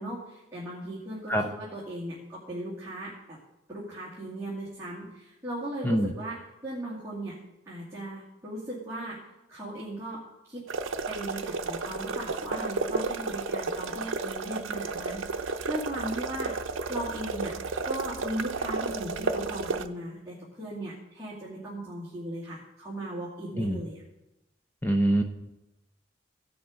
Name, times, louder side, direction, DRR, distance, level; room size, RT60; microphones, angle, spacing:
voice 1, 0.0-3.4 3.7-7.4 7.7-9.2 9.5-10.2 10.5-10.7 11.1-16.5 16.9-17.6 17.8-24.0, right 1 dB, 15° right, -9 dB, 2.3 m, -37 dB
sound 1, 10.7-19.9, right 4 dB, 85° right, 0.6 m, -32 dB
voice 2, 24.8-25.2, right 1 dB, 10° left, 4 dB, 0.6 m, -24 dB
16.0 x 6.1 x 5.1 m, 0.96 s
head